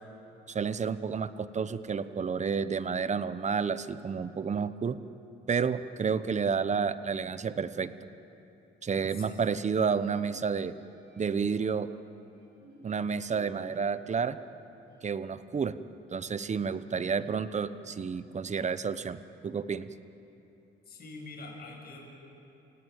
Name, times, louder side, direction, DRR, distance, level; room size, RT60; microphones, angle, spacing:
voice 1, 0.5-5.0 5.5-7.9 8.8-10.7 11.2-11.9 12.8-14.4 15.0-15.7 16.1-19.9, right 6 dB, 35° right, 13 dB, 1.0 m, -30 dB
sound 1, 9.8-11.7 12.3-15.3 15.6-15.7 16.8-18.9, right 2 dB, 70° right, 4.7 m, -56 dB
voice 2, 20.8-22.0, left 3 dB, 50° left, 0 dB, 7.7 m, -44 dB
28.5 x 17.5 x 8.9 m, 3.0 s
cardioid pair, 90°, 20 cm